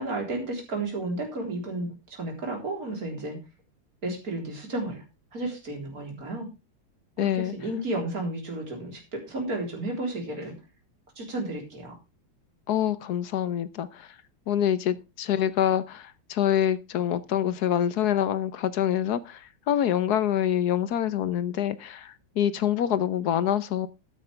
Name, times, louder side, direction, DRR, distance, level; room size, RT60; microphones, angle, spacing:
voice 1, 0.0-3.4 4.0-5.0 5.3-6.5 7.2-10.6 11.2-12.0, right 2 dB, 40° right, 4.2 m, -32 dB
voice 2, 7.2-7.5 12.7-14.1 14.5-23.9, left 10 dB, 60° left, 1.1 m, -26 dB
13.0 x 9.6 x 3.4 m
omnidirectional pair, 2.4 m